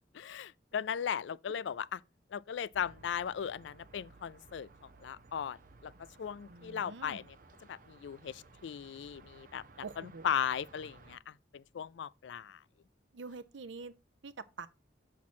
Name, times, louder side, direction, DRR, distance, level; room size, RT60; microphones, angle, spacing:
voice 1, 0.1-2.0 2.3-4.7 5.0-5.6 5.8-5.9 6.2-7.2 7.7-9.6 10.2-12.6, left 8 dB, 75° left, 0.4 m, -37 dB
sound 1, 2.7-11.2, right 3 dB, 45° right, 0.8 m, -58 dB
voice 2, 6.5-7.2 9.8-10.3 13.1-13.9 14.2-14.7, right 4 dB, 85° right, 0.7 m, -45 dB
7.3 x 6.0 x 4.3 m
head